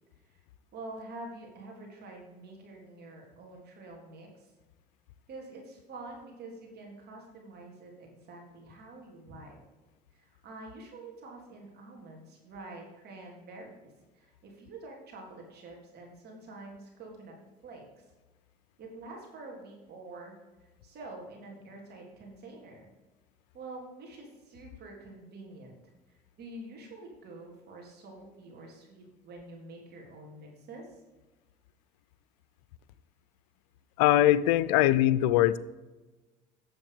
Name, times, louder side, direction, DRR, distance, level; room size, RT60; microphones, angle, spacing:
voice 1, 0.7-4.5 5.3-9.6 10.1-13.7 14.1-17.3 17.6-18.0 18.8-20.3 20.8-22.9 23.5-25.8 26.1-31.0, right 2 dB, 55° right, 0 dB, 3.5 m, -47 dB
voice 2, 34.0-35.6, left 13 dB, 85° left, 17 dB, 0.5 m, -22 dB
8.9 x 7.2 x 5.1 m, 1.2 s
supercardioid pair, 85°, 20 cm